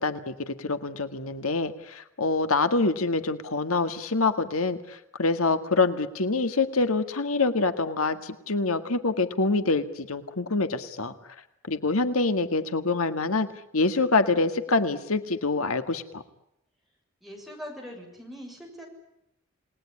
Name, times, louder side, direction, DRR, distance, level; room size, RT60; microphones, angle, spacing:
voice 1, 0.0-11.1 11.7-13.5 13.7-16.2, left 3 dB, 90° left, 9 dB, 1.8 m, -26 dB
voice 2, 17.2-18.8, equal, ahead, 0 dB, 6.9 m, -41 dB
29.0 x 20.0 x 10.0 m, 0.83 s
head